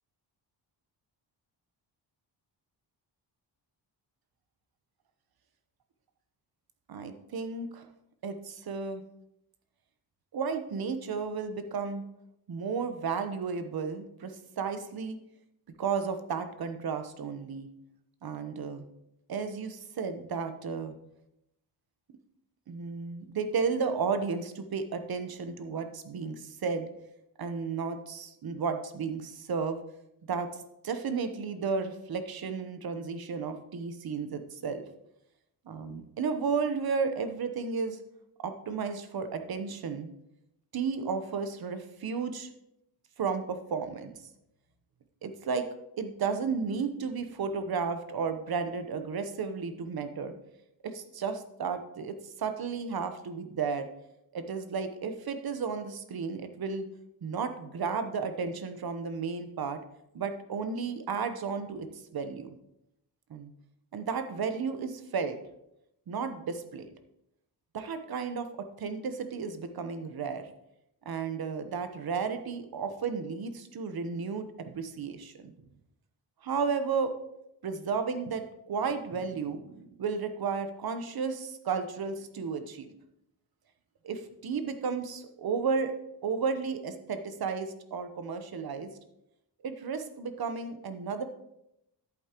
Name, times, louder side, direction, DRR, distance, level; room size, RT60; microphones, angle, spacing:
voice 1, 6.9-7.9 8.2-9.0 10.3-12.0 12.5-15.2 15.8-17.7 18.2-18.9 19.3-20.9 22.7-26.9 27.4-29.8 30.3-30.5 30.8-34.8 35.7-38.0 38.4-40.1 40.7-42.5 43.2-44.2 45.2-45.6 46.0-50.3 50.8-53.9 54.3-56.8 57.2-59.8 60.1-61.9 62.1-62.5 63.3-63.5 63.9-65.4 66.1-66.9 67.7-68.5 68.8-70.5 71.0-75.5 76.4-77.1 77.6-82.9 84.0-85.9 86.2-88.9 89.6-91.2, right 5 dB, 55° right, 8 dB, 1.0 m, -33 dB
11.0 x 8.5 x 3.0 m, 0.83 s
wide cardioid pair, 130°, 45 cm